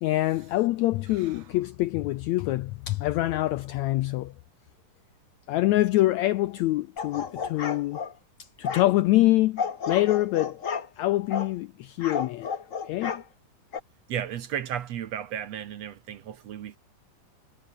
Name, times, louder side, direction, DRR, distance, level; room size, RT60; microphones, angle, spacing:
voice 1, 0.0-4.3 5.5-8.0 8.4-10.6 11.0-12.5 12.9-13.2, left 17 dB, 85° left, 1.6 m, -25 dB
voice 2, 1.1-1.4 14.1-16.8, right 9 dB, 60° right, 2.0 m, -34 dB
sound 1, 7.0-8.1 8.6-8.9 9.6-10.9 11.3-11.5 12.0-13.2 13.7-13.8, left 6 dB, 65° left, 0.7 m, -32 dB
omnidirectional pair, 3.9 m